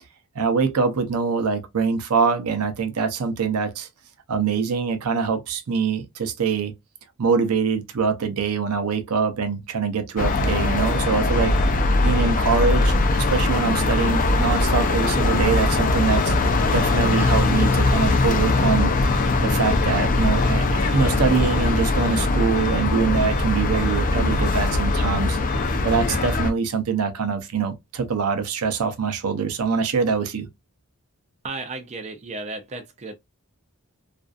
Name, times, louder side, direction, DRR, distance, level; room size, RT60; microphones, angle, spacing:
voice 1, 0.4-3.9 4.3-6.7 7.2-11.5 12.0-16.3 16.7-18.9 19.4-25.4 25.8-30.5, right 5 dB, 80° right, 0.6 m, -24 dB
sound 1, 10.2-26.5, left 2 dB, 40° left, 0.4 m, -21 dB
voice 2, 31.4-33.1, right 3 dB, 30° right, 0.4 m, -34 dB
2.5 x 2.3 x 2.3 m
head